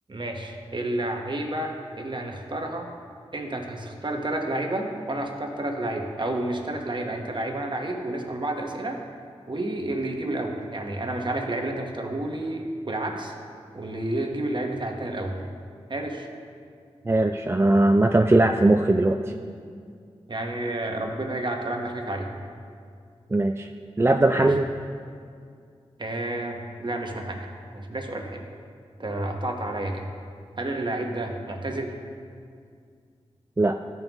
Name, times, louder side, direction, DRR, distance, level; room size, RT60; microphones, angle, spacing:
voice 1, 0.1-2.9 3.3-9.0 9.5-13.3 13.7-15.4 15.9-16.3 20.3-22.3 24.3-24.5 26.0-27.4 27.7-28.4 29.0-30.0 30.6-32.0, right 1 dB, 45° right, 2 dB, 1.2 m, -30 dB
voice 2, 17.1-19.2 23.3-23.7 24.0-24.7 33.6-33.8, right 2 dB, 20° right, 5 dB, 0.4 m, -19 dB
12.5 x 5.4 x 3.0 m, 2.2 s
cardioid pair, 40°, 11 cm